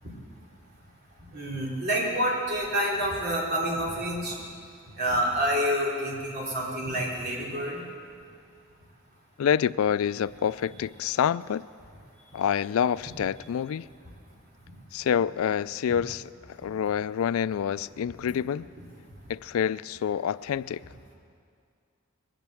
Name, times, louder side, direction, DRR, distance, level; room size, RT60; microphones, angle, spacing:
voice 1, 1.3-4.4 5.0-7.8, equal, 50° right, -4 dB, 3.6 m, -28 dB
voice 2, 9.4-11.6 12.3-13.9 14.9-16.3 16.6-18.7 19.3-20.8, left 8 dB, 90° left, 19 dB, 0.3 m, -27 dB
20.5 x 9.0 x 7.7 m, 2.3 s
head